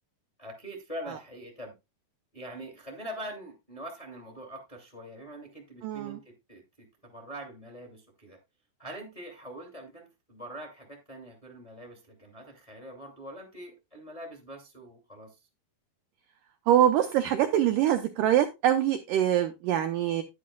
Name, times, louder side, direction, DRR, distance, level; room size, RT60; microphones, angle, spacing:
voice 1, 0.4-1.7 2.3-8.4 8.8-15.4, right 1 dB, 10° left, 1.7 m, -43 dB
voice 2, 5.8-6.2 16.7-20.2, right 11 dB, 75° right, 2.0 m, -24 dB
10.5 x 9.6 x 2.3 m
omnidirectional pair, 4.6 m